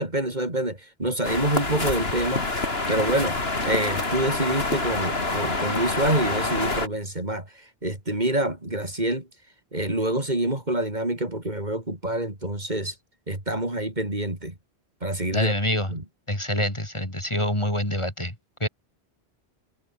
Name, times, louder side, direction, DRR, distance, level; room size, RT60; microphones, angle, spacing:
voice 1, 0.0-2.5 2.9-9.3 9.7-13.0 13.3-14.6 15.0-16.0, right 1 dB, 40° right, 4.6 m, -27 dB
sound 1, 1.2-6.9, left 2 dB, 65° left, 3.6 m, -27 dB
voice 2, 15.3-15.9 16.3-18.7, left 1 dB, 25° left, 4.7 m, -26 dB
omnidirectional pair, 1.1 m